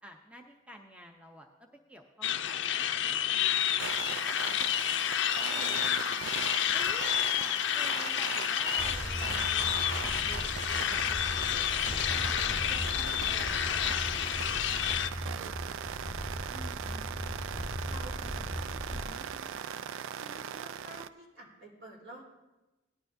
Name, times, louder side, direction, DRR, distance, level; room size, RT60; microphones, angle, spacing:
voice 1, 0.0-1.5 1.9-2.6 3.0-4.8 5.3-5.8 6.0-6.2 6.7-12.4 12.7-15.6 16.5-16.9, equal, 5° right, 3 dB, 0.6 m, -52 dB
sound 1, 2.2-15.1, left 10 dB, 65° left, 0.4 m, -30 dB
sound 2, 3.8-21.1, right 9 dB, 85° right, 0.3 m, -40 dB
voice 2, 5.4-6.2 15.1-15.4 16.8-17.5 17.9-18.2 18.4-22.2, right 1 dB, 70° right, -3 dB, 3.8 m, -51 dB
sound 3, 8.8-19.0, equal, 30° right, 2.6 m, -39 dB
18.0 x 11.0 x 2.6 m, 1.1 s
head